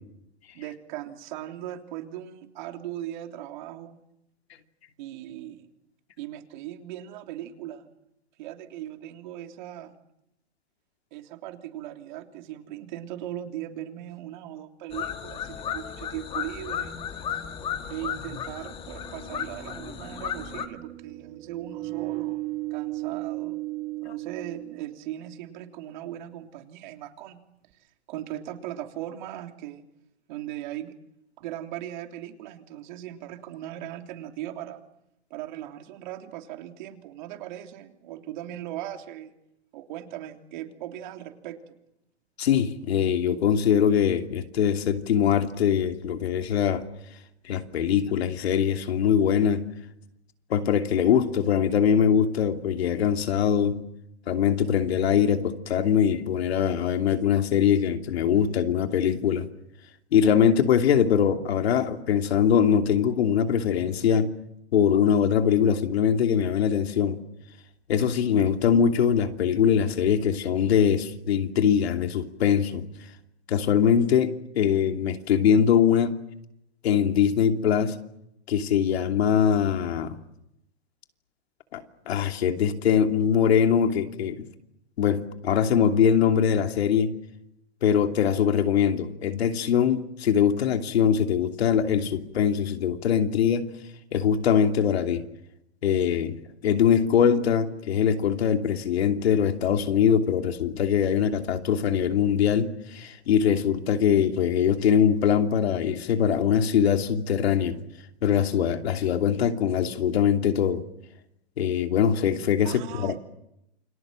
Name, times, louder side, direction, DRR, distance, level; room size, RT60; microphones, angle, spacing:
voice 1, 0.5-4.0 5.0-5.7 6.2-7.9 8.4-9.9 11.1-16.9 17.9-22.4 22.7-23.6 24.0-27.4 28.1-29.8 30.3-30.9 31.4-34.8 35.3-39.3 39.7-41.6 112.6-113.2, right 12 dB, 45° right, 3.3 m, -38 dB
sound 1, 14.9-20.7, left 8 dB, 15° left, 1.7 m, -34 dB
sound 2, 17.0-17.1 18.6-25.4, right 20 dB, 30° right, 2.4 m, -36 dB
voice 2, 42.4-46.8 47.4-49.7 50.5-53.8 54.3-59.5 60.1-64.3 64.7-67.2 67.9-72.9 73.5-76.2 76.8-78.0 78.5-80.1 81.7-84.5 85.0-87.2 87.8-93.7 94.1-95.2 95.8-107.8 108.2-110.8 111.6-113.2, left 8 dB, 70° left, 2.8 m, -22 dB
29.0 x 24.5 x 7.6 m
hypercardioid pair, 155°, 33 cm